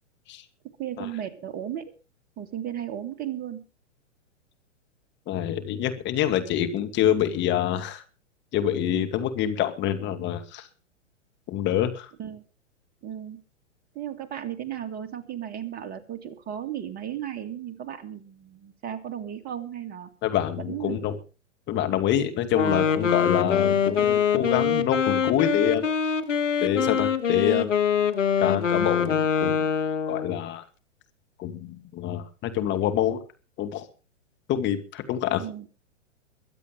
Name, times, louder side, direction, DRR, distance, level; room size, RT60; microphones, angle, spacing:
voice 1, 0.8-1.9 2.4-3.6 12.2-12.4 13.0-13.4 13.9-20.1 20.7-21.0 24.0-24.1 35.4-35.7, right 10 dB, 25° right, 7 dB, 2.2 m, -35 dB
voice 2, 5.3-8.0 8.5-10.7 11.5-12.1 20.2-21.2 21.7-25.8 26.6-27.7 28.4-29.7 30.1-30.6 31.4-33.2 33.6-33.9 34.5-35.4, left 10 dB, 30° left, 7 dB, 2.4 m, -26 dB
Wind instrument woodwind instrument, 22.5-30.4, left 7 dB, 80° left, 1.7 m, -24 dB
23.0 x 8.3 x 5.2 m, 0.35 s
hypercardioid pair, 115°, 37 cm